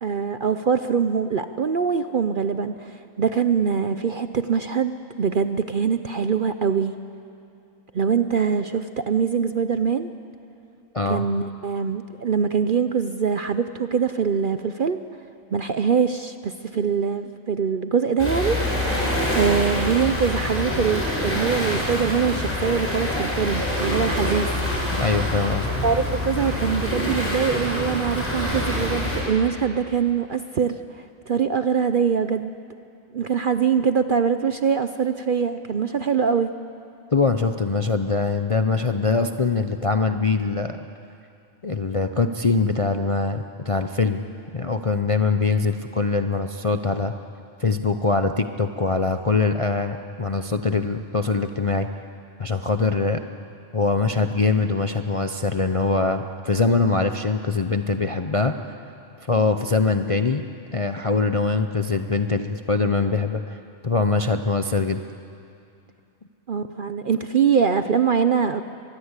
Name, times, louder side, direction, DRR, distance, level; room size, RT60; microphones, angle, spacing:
voice 1, 0.0-6.9 7.9-10.1 11.1-15.0 15.5-18.6 19.3-24.5 25.8-32.5 33.1-36.5 66.5-68.6, right 6 dB, 50° right, 10 dB, 0.7 m, -23 dB
voice 2, 10.9-11.3 25.0-25.7 37.1-40.8 41.6-44.2 44.5-47.1 47.6-51.9 52.4-53.2 53.7-58.5 59.3-60.4 60.7-63.6 63.8-65.0, left 4 dB, 35° left, 7 dB, 0.5 m, -23 dB
sound 1, 18.2-29.2, left 1 dB, 10° left, 6.5 m, -25 dB
23.5 x 21.5 x 8.2 m, 2.5 s
omnidirectional pair, 1.4 m